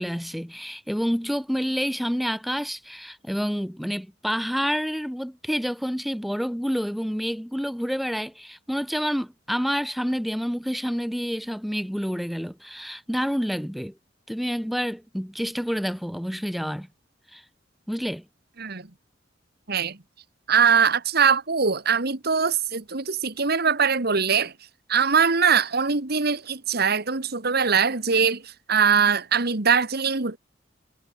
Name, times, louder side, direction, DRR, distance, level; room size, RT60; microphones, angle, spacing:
voice 1, 0.0-13.9 14.3-16.9 17.3-17.4 17.9-18.2, equal, ahead, 1.6 m, -28 dB
voice 2, 19.7-20.0 20.5-24.5 24.9-28.4 28.7-30.4, right 6 dB, 55° right, 1.9 m, -22 dB
head